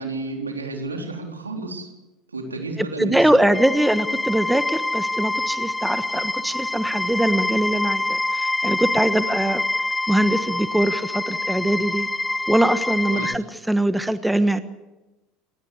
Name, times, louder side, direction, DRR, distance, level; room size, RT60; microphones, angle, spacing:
voice 1, 0.0-1.9 2.3-3.4 13.1-13.3, right 2 dB, 85° right, 2 dB, 3.8 m, -31 dB
voice 2, 3.0-9.6 10.1-12.1 12.5-14.6, right 1 dB, 5° right, 12 dB, 1.3 m, -22 dB
sound 1, 3.5-13.3, left 2 dB, 10° left, 0.9 m, -26 dB
28.0 x 16.5 x 8.3 m, 1.1 s
figure-of-eight pair, 70°, 0 cm